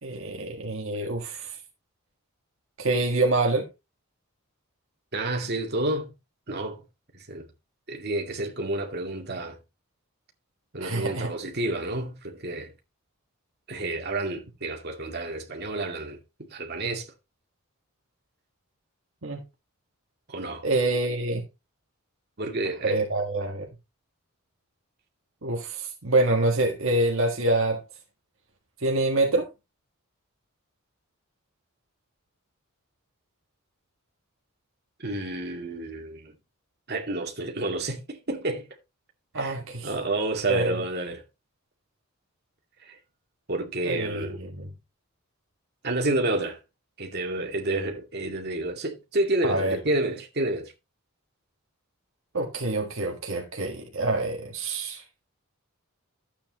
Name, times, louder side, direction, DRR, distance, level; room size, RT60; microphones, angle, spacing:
voice 1, 0.0-1.6 2.8-3.6 10.8-11.3 19.2-19.4 20.6-21.4 22.8-23.7 25.4-27.8 28.8-29.4 39.3-39.9 40.5-40.7 43.8-44.7 49.4-49.8 52.3-55.0, right 2 dB, 65° right, 1.6 m, -26 dB
voice 2, 5.1-6.1 6.5-6.8 7.1-7.5 7.9-9.6 10.7-12.7 13.7-17.1 20.3-20.7 22.4-23.0 35.0-36.4 36.9-38.7 39.3-39.6 39.8-41.2 42.9-43.0 43.5-44.4 45.8-46.6 47.0-50.7, right 2 dB, 50° right, 2.2 m, -30 dB
12.5 x 8.6 x 3.0 m
head